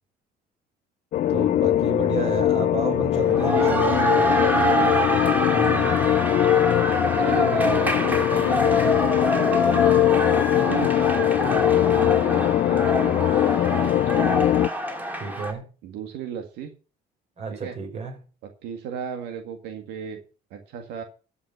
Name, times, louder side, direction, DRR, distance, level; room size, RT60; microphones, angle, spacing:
sound 1, 1.1-14.7, left 12 dB, 50° left, 0.5 m, -21 dB
voice 1, 1.3-4.3 5.5-6.0 15.2-15.7 17.4-18.2, right 5 dB, 40° right, 5.5 m, -31 dB
sound 2, 3.2-15.5, equal, 10° right, 2.6 m, -26 dB
voice 2, 3.3-5.0 7.2-14.3 15.8-16.7 17.6-17.7 18.6-20.2 20.5-21.0, right 8 dB, 90° right, 1.9 m, -35 dB
13.0 x 5.9 x 6.9 m
cardioid pair, 110°, 17 cm